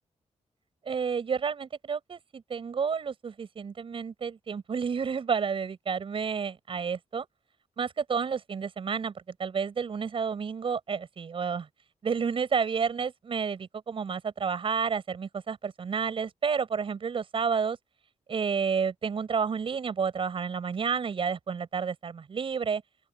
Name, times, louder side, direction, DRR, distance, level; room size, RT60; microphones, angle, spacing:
voice 1, 0.9-7.3 7.8-11.7 12.0-17.8 18.3-22.8, right 6 dB, 45° right, 7.6 m, -30 dB
open air
wide cardioid pair, 150°, 12 cm